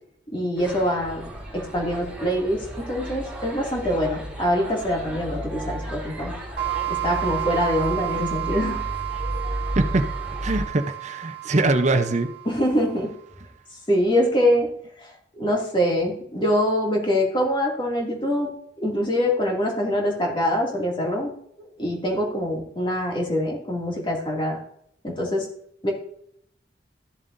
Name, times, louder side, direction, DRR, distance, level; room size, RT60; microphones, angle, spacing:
voice 1, 0.3-1.2 1.5-6.3 6.9-8.8 12.5-13.1 13.9-14.7 15.0-15.1 15.4-18.5 18.8-24.6 25.0-25.5 25.8-25.9, equal, 30° left, -1 dB, 2.3 m, -24 dB
sound 1, 0.6-10.7, equal, 5° right, 3.4 m, -33 dB
sound 2, 6.6-13.1, right 17 dB, 70° right, 1.4 m, -31 dB
voice 2, 9.7-10.1 10.4-12.3, right 2 dB, 40° right, 9 dB, 0.7 m, -22 dB
14.0 x 7.3 x 2.6 m, 0.70 s
head